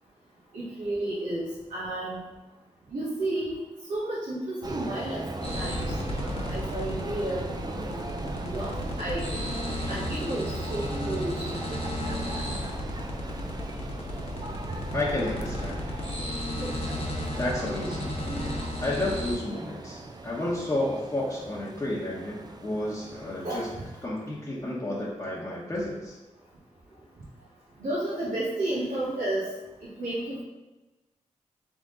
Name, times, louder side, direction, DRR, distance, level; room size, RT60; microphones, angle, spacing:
voice 1, 0.5-2.2 2.9-3.6 3.9-5.8 6.2-8.0 8.4-9.2 9.9-11.5 16.6-16.8 23.4-23.8 27.8-29.5 30.0-30.4, right 1 dB, 80° right, -8 dB, 1.2 m, -32 dB
sound 1, 4.6-24.1, right 2 dB, 30° right, 0.4 m, -39 dB
sound 2, 5.4-19.4, left 1 dB, 45° left, 1.0 m, -34 dB
voice 2, 14.9-15.8 17.2-18.1 18.8-23.7 24.0-26.2, left 1 dB, 25° left, -8 dB, 1.0 m, -31 dB
3.7 x 3.6 x 3.8 m, 1.1 s
cardioid pair, 65°, 13 cm